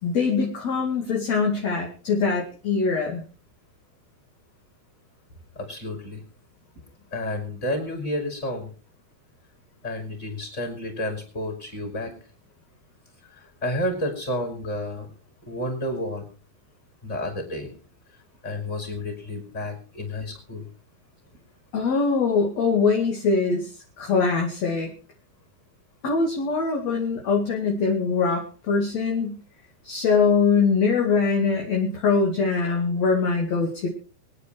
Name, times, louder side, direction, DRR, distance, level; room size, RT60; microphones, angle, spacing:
voice 1, 0.0-3.2 21.7-23.7 24.0-24.9 26.0-29.3 29.8-33.9, left 4 dB, 45° left, 1 dB, 3.2 m, -23 dB
voice 2, 5.6-6.2 7.1-8.7 9.8-12.1 13.3-15.1 15.5-16.2 17.0-17.7 18.4-20.7, left 1 dB, 15° left, 3 dB, 5.8 m, -30 dB
24.0 x 10.0 x 4.7 m, 0.38 s
omnidirectional pair, 4.8 m